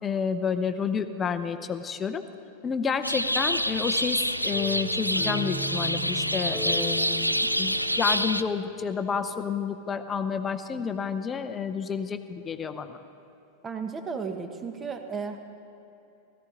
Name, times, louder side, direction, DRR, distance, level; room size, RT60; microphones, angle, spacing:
voice 1, 0.0-2.2 2.6-13.0, left 6 dB, 20° left, 9 dB, 0.7 m, -30 dB
sound 1, 3.0-8.4, equal, 90° left, 0.3 m, -27 dB
sound 2, 4.5-9.4, right 1 dB, 5° right, 2.4 m, -38 dB
voice 2, 13.6-15.4, right 5 dB, 20° right, 6 dB, 1.1 m, -34 dB
17.0 x 14.5 x 3.8 m, 2.8 s
figure-of-eight pair, 90°, 0 cm